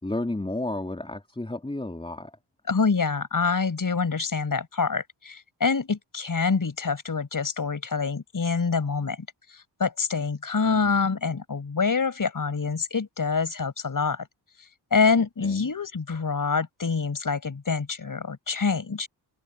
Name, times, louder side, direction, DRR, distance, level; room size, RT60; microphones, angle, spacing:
voice 1, 0.0-2.4 10.6-11.0 15.4-15.7, left 2 dB, 10° left, 2.9 m, -32 dB
voice 2, 2.7-14.3 14.9-19.1, left 5 dB, 45° left, 5.3 m, -26 dB
open air
cardioid pair, 65°, 47 cm